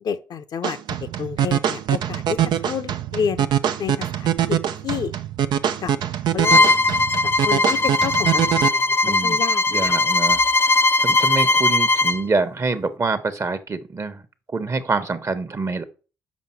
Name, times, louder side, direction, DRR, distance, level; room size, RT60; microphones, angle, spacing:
voice 1, 0.0-3.5 3.8-4.6 4.8-5.1 5.8-5.9 6.3-10.0, left 7 dB, 60° left, 0.8 m, -30 dB
sound 1, 0.6-8.7, right 10 dB, 65° right, 0.6 m, -23 dB
Bowed string instrument, 6.4-12.2, left 2 dB, 30° left, 0.5 m, -19 dB
voice 2, 9.0-9.4 9.7-14.2 14.5-15.8, right 3 dB, 40° right, 1.2 m, -26 dB
7.4 x 5.4 x 4.6 m
hypercardioid pair, 45°, 8 cm